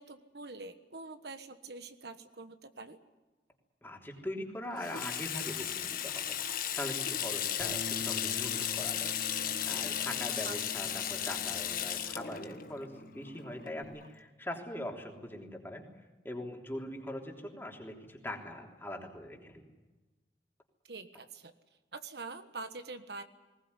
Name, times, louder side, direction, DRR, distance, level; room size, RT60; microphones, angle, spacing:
voice 1, 0.0-3.0 10.4-10.6 20.9-21.5 21.9-23.2, right 3 dB, 65° right, 9 dB, 1.3 m, -45 dB
voice 2, 3.8-9.3 9.6-15.8 16.2-19.7, left 1 dB, 10° left, 1 dB, 3.3 m, -42 dB
Water tap faucet / Sink (filling or washing), 4.8-14.1, left 10 dB, 50° left, 1.5 m, -35 dB
Bass guitar, 7.6-13.8, left 2 dB, 40° right, 3.4 m, -47 dB
20.0 x 19.5 x 9.7 m, 1.2 s
head